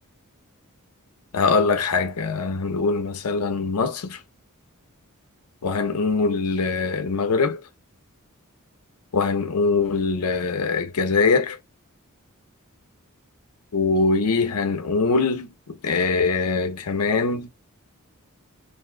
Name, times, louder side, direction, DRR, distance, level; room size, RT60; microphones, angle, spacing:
voice 1, 1.3-4.2 5.6-7.6 9.1-11.6 13.7-17.5, left 4 dB, 80° left, 0.6 m, -22 dB
2.6 x 2.2 x 2.4 m
head